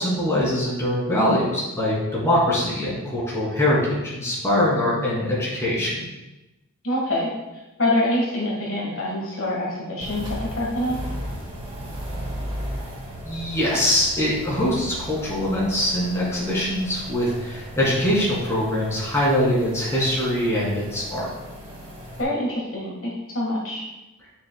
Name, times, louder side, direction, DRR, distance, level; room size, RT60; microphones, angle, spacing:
voice 1, 0.0-6.1 13.3-21.3, left 1 dB, 15° left, -6 dB, 2.6 m, -23 dB
voice 2, 6.8-7.3 7.8-11.0 22.2-22.9 23.3-23.8, left 1 dB, 60° left, -3 dB, 1.5 m, -25 dB
sound 1, 10.0-22.2, equal, 25° right, 1.6 m, -36 dB
10.0 x 6.5 x 2.2 m, 1.0 s
head